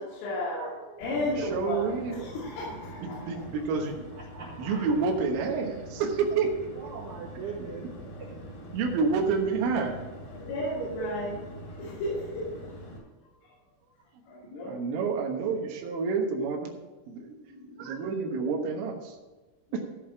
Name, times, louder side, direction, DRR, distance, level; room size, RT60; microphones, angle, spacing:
voice 1, 0.0-3.7 10.4-11.4 11.7-12.5 13.4-13.5 14.3-14.8 17.4-18.0 19.7-19.8, left 1 dB, 80° left, -8 dB, 5.2 m, -34 dB
sound 1, 1.0-13.0, equal, 60° left, 4.3 m, -44 dB
voice 2, 1.5-2.3 3.3-4.0 4.6-6.5 8.7-10.0 14.7-16.7 17.1-17.3 17.8-19.2 19.7-19.8, right 5 dB, 80° right, 1 dB, 3.8 m, -28 dB
voice 3, 4.2-4.9 6.7-7.9 8.2-8.3 10.8-11.1, right 5 dB, 65° right, -4 dB, 3.6 m, -39 dB
15.5 x 5.4 x 6.0 m, 1.2 s
omnidirectional pair, 5.7 m